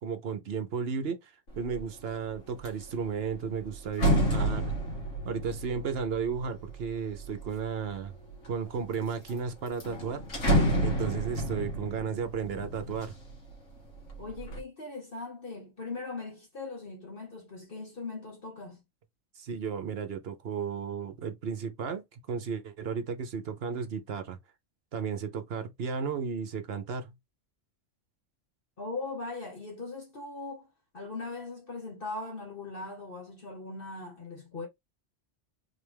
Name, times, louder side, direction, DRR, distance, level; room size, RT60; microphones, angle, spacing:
voice 1, 0.0-4.7 5.2-8.1 8.5-10.2 10.8-13.2 19.4-24.4 24.9-27.1, right 6 dB, 60° right, 0.9 m, -34 dB
sound 1, 1.6-1.9 2.3-7.6 8.3-8.9 9.3-9.4 9.7-13.6 14.0-14.6, equal, 85° left, 2.0 m, -30 dB
voice 2, 10.9-11.3 14.2-18.8 28.8-30.7 30.9-34.7, left 3 dB, 50° left, 1.2 m, -40 dB
3.9 x 3.3 x 3.4 m
omnidirectional pair, 1.3 m